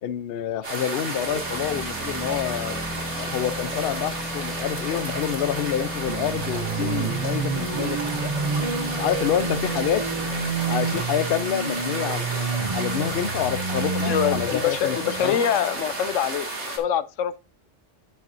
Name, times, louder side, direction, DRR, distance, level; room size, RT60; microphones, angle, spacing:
voice 1, 0.0-2.8 3.2-8.3 9.0-10.1 10.7-15.4, left 10 dB, 60° left, 0.7 m, -28 dB
sound 1, 0.6-16.8, right 2 dB, 70° right, 2.5 m, -32 dB
sound 2, 0.9-12.4, left 2 dB, 5° right, 1.1 m, -36 dB
sound 3, 6.1-15.9, right 5 dB, 40° right, 0.5 m, -29 dB
voice 2, 14.0-17.4, left 9 dB, 85° left, 1.0 m, -25 dB
12.0 x 5.9 x 2.6 m
omnidirectional pair, 1.2 m